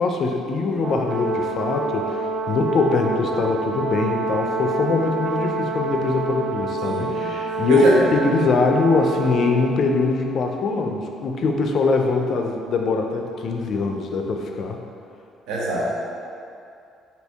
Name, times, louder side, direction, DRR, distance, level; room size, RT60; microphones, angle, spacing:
voice 1, 0.0-7.9 8.1-14.8, left 3 dB, 60° left, 3 dB, 0.3 m, -22 dB
Brass instrument, 0.8-9.8, right 3 dB, 55° right, 0.4 m, -27 dB
voice 2, 6.8-7.3 7.7-7.9 15.5-15.8, right 1 dB, 80° right, -5 dB, 0.7 m, -24 dB
2.7 x 2.7 x 3.3 m, 2.5 s
cardioid pair, 90°, 0 cm